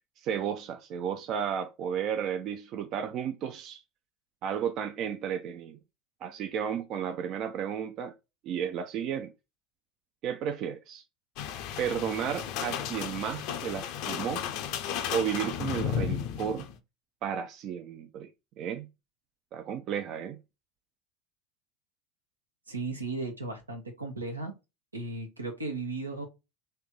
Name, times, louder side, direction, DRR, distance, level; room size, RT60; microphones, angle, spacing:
voice 1, 0.2-3.8 4.4-5.8 6.2-8.1 8.4-9.3 10.2-11.0 11.8-14.4 15.1-16.7 17.2-18.3 18.6-18.9 19.5-20.4, right 8 dB, 45° right, 0.5 m, -33 dB
sound 1, 11.4-16.8, left 9 dB, 55° left, 0.5 m, -34 dB
voice 2, 22.7-24.5 24.9-26.3, right 2 dB, 90° right, 0.9 m, -35 dB
3.3 x 2.8 x 3.7 m
figure-of-eight pair, 75°, 0 cm